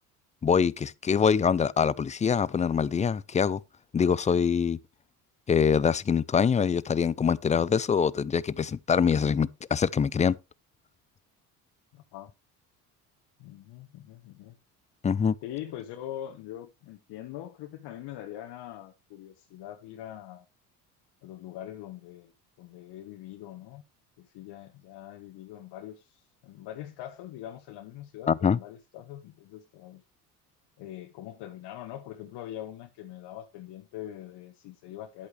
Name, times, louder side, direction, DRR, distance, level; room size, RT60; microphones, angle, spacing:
voice 1, 0.4-3.6 3.9-4.8 5.5-10.4 15.0-15.3 28.3-28.6, left 6 dB, 15° left, 0.4 m, -24 dB
voice 2, 11.9-12.3 13.4-14.6 15.4-20.4 21.2-22.3 22.6-23.8 24.2-30.0 30.8-35.3, left 12 dB, 60° left, 1.4 m, -43 dB
10.5 x 8.2 x 3.3 m
hypercardioid pair, 65°, 44 cm